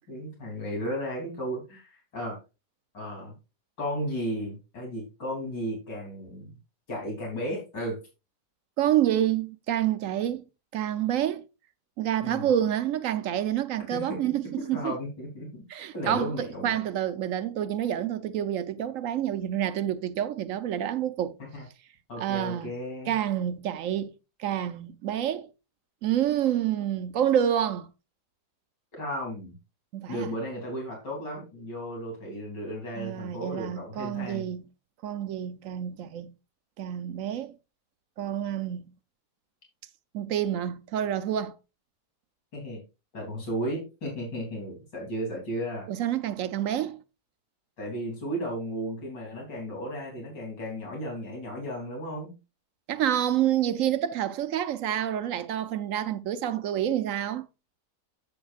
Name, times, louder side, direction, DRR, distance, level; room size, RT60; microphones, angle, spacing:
voice 1, 0.1-2.4 2.9-3.3 3.8-6.6 6.9-8.0 12.2-12.5 13.9-14.2 14.6-15.6 15.9-16.8 21.4-21.7 22.1-23.1 28.9-29.6 30.1-34.5 42.5-42.8 43.1-45.9 47.8-52.4, equal, 90° left, 3.8 m, -34 dB
voice 2, 8.8-10.4 10.7-11.5 12.0-14.9 15.7-21.3 22.2-22.7 23.1-24.1 24.4-25.5 26.0-27.9 29.9-30.3 33.0-34.6 35.0-36.3 36.8-37.5 38.2-38.9 40.1-41.5 45.9-47.0 52.9-57.4, right 10 dB, 65° right, 0.8 m, -28 dB
10.5 x 8.6 x 2.4 m
omnidirectional pair, 1.8 m